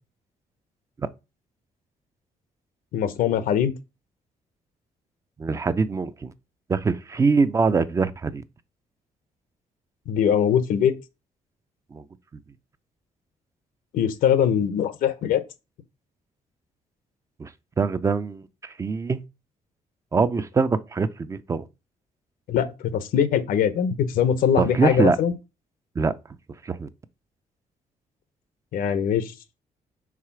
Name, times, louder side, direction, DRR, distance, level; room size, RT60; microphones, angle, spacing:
voice 1, 2.9-3.7 10.1-10.9 13.9-15.4 22.5-25.3 28.7-29.3, left 8 dB, 85° left, 0.9 m, -22 dB
voice 2, 5.4-6.3 6.7-8.4 11.9-12.0 17.4-17.5 17.8-19.2 20.1-21.6 24.6-25.2 26.0-26.1 26.6-26.9, right 4 dB, 20° right, 0.4 m, -23 dB
4.8 x 4.0 x 5.7 m
cardioid pair, 160°, 14 cm